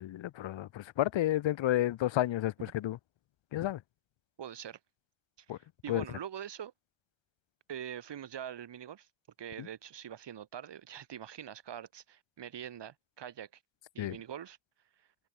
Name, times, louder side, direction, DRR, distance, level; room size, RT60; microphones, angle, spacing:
voice 1, 0.0-3.0 3.5-3.8 5.5-5.6 5.9-6.0 9.6-9.7 14.0-14.2, left 13 dB, 70° left, 2.0 m, -31 dB
voice 2, 4.4-4.8 5.4-6.7 7.7-9.1 9.4-13.5 13.9-14.6 15.0-15.1, right 9 dB, 60° right, 6.6 m, -44 dB
cardioid pair, 80°, 46 cm